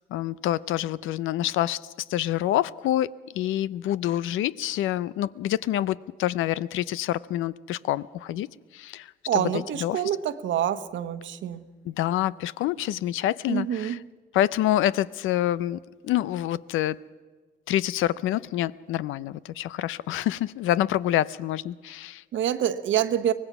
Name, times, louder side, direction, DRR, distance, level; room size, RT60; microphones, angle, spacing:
voice 1, 0.1-1.8 2.1-8.5 8.7-9.5 9.8-10.0 11.9-14.0 14.3-17.0 17.7-22.2, left 13 dB, 85° left, 18 dB, 0.6 m, -27 dB
voice 2, 9.3-11.7 13.5-14.0 22.3-23.3, right 10 dB, 70° right, 10 dB, 1.2 m, -26 dB
24.0 x 18.5 x 6.0 m, 1.4 s
cardioid pair, 90°, 20 cm